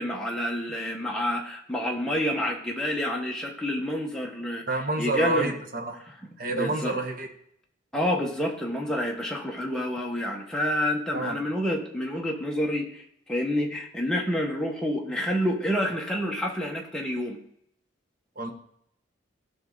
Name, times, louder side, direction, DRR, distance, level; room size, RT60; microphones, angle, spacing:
voice 1, 0.0-4.6 5.0-5.5 6.5-7.0 7.9-13.0 13.3-17.4, equal, 5° left, -1 dB, 1.5 m, -28 dB
voice 2, 4.7-6.0 6.4-7.3 11.1-11.4 18.3-18.5, right 2 dB, 45° right, 3 dB, 1.4 m, -28 dB
16.5 x 6.2 x 4.0 m, 0.71 s
head